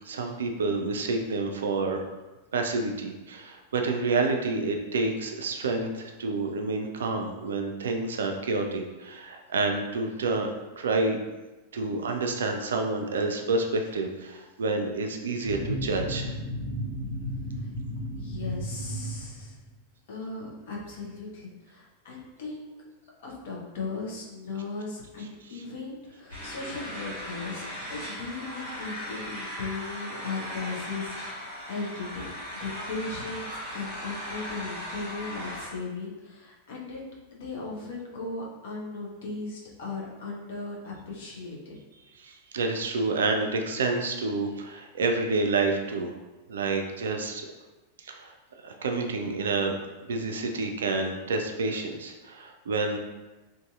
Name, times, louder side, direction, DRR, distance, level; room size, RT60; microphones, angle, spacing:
voice 1, 0.1-2.0 2.5-10.5 10.8-11.2 11.7-16.3 42.2-46.1 46.5-47.5 48.0-48.3 48.6-49.8 50.0-53.0, right 3 dB, 65° right, 4 dB, 0.3 m, -28 dB
sound 1, 15.4-19.7, equal, 15° left, 1.3 m, -34 dB
voice 2, 18.2-19.6 20.1-22.7 23.2-32.2 32.5-37.0 37.3-41.8, left 3 dB, 55° left, -3 dB, 0.7 m, -37 dB
sound 2, 26.3-35.7, equal, 75° left, 1.4 m, -38 dB
2.6 x 2.6 x 2.4 m, 1.1 s
figure-of-eight pair, 90°, 0 cm